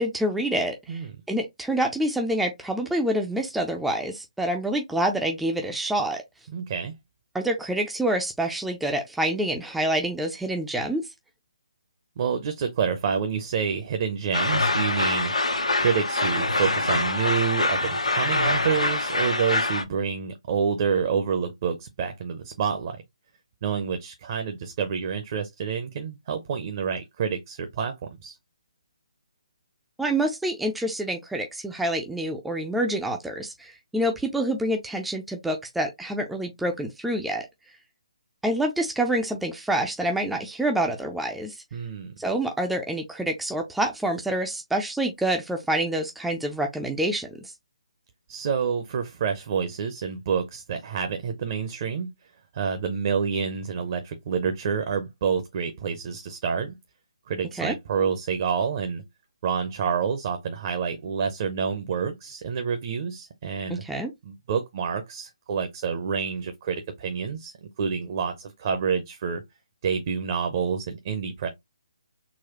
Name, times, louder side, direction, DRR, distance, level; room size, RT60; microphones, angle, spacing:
voice 1, 0.0-6.2 7.3-11.1 30.0-37.5 38.4-41.6 42.2-47.5 57.6-57.7 63.7-64.1, right 1 dB, 5° right, 0.4 m, -27 dB
voice 2, 6.5-6.9 12.2-15.3 15.8-23.0 23.6-27.9 28.2-28.4 41.7-42.1 48.3-52.1 52.5-56.8 57.3-59.0 59.4-63.8 64.2-69.4 69.8-71.5, right 6 dB, 40° right, 0.7 m, -28 dB
sound 1, 14.3-19.8, left 2 dB, 85° left, 0.8 m, -25 dB
4.0 x 2.3 x 2.9 m
figure-of-eight pair, 140°, 3 cm